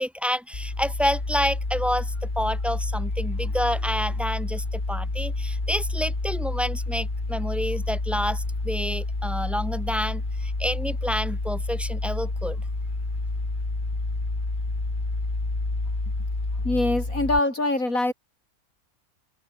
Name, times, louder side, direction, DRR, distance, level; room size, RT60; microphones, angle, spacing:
voice 1, 0.0-12.6, equal, ahead, 7.5 m, -29 dB
sound 1, 0.5-17.4, left 2 dB, 35° left, 3.2 m, -29 dB
voice 2, 16.6-18.1, left 2 dB, 70° left, 6.8 m, -23 dB
omnidirectional pair, 1.5 m